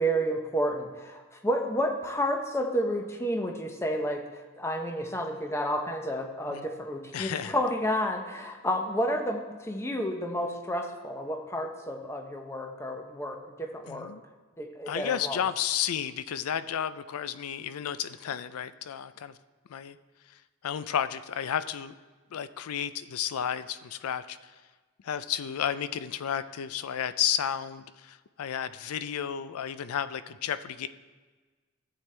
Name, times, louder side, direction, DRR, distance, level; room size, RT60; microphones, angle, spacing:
voice 1, 0.0-4.2 4.6-14.1 14.6-15.4, equal, 10° left, 4 dB, 0.7 m, -30 dB
voice 2, 7.1-7.5 13.9-14.2 14.9-19.3 19.7-20.0 20.6-21.9 22.3-24.5 25.0-30.9, left 9 dB, 90° left, 14 dB, 0.4 m, -32 dB
13.5 x 7.7 x 3.3 m, 1.4 s
head